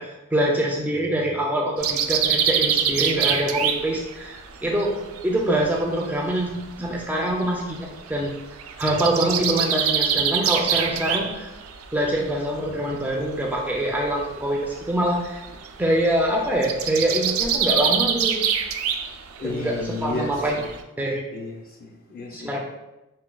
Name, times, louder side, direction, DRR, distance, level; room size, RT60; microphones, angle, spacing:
voice 1, 0.0-6.5 6.8-8.3 8.8-11.5 11.9-15.4 15.8-18.4 19.4-20.6 21.0-21.2 22.3-22.6, right 1 dB, 10° right, -2 dB, 0.4 m, -24 dB
sound 1, 1.8-6.1 6.4-12.6 12.9-20.8, right 8 dB, 80° right, 0.3 m, -25 dB
voice 2, 19.4-20.6 21.3-22.5, left 2 dB, 45° left, 0 dB, 0.6 m, -32 dB
5.4 x 2.2 x 2.3 m, 0.96 s
head